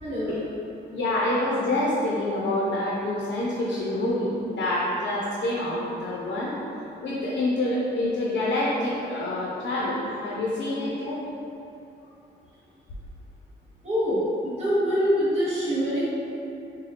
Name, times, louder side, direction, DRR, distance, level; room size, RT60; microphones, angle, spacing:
voice 1, 0.0-0.4 13.8-16.0, equal, 35° right, -10 dB, 0.8 m, -25 dB
voice 2, 0.9-6.5 7.0-11.2, left 1 dB, 80° left, -6 dB, 0.6 m, -27 dB
4.1 x 2.2 x 3.2 m, 2.8 s
wide cardioid pair, 160°, 19 cm